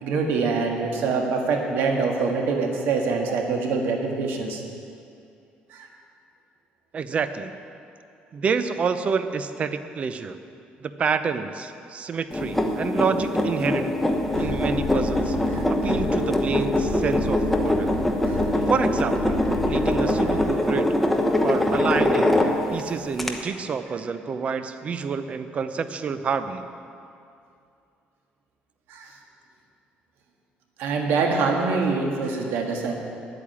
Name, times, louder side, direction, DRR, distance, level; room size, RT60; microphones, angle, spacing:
voice 1, 0.0-4.6 5.7-5.9 14.4-14.5 15.5-15.6 18.2-18.4 28.9-29.1 30.8-32.9, right 4 dB, 85° right, 2 dB, 1.8 m, -25 dB
voice 2, 6.9-7.5 8.3-10.4 10.8-13.9 14.4-15.4 15.7-17.9 18.7-20.9 21.4-22.3 22.7-26.7, right 5 dB, 35° right, 10 dB, 0.6 m, -28 dB
sound 1, 12.3-22.8 23.2-23.3, left 1 dB, 5° left, 1.0 m, -23 dB
sound 2, 14.1-20.5, left 3 dB, 20° left, 3.0 m, -34 dB
10.0 x 8.5 x 8.8 m, 2.5 s
cardioid pair, 130°, 3 cm